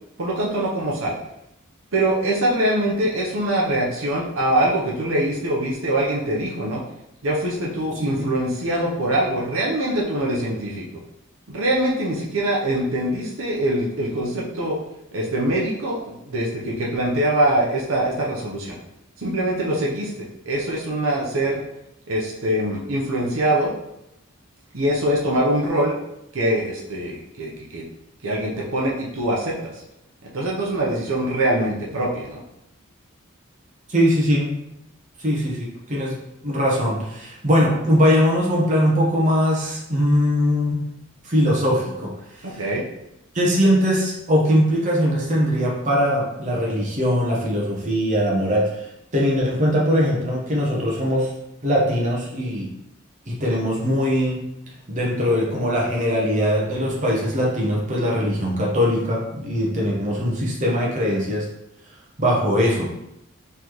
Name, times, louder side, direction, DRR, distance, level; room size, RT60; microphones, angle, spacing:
voice 1, 0.2-1.2 1.9-6.8 7.2-10.8 11.5-14.8 15.1-18.8 19.2-21.6 22.1-23.7 24.7-25.9 26.3-27.8 28.2-29.6 30.2-32.4 42.4-42.8, right 1 dB, 75° right, -3 dB, 0.8 m, -23 dB
voice 2, 33.9-34.6 35.2-36.2 36.4-40.9 41.2-42.1 42.5-42.6 43.3-48.8 49.1-51.3 51.6-52.7 53.3-54.4 54.9-61.5 62.2-62.9, equal, 35° right, -4 dB, 0.9 m, -21 dB
4.0 x 3.3 x 3.0 m, 0.83 s
head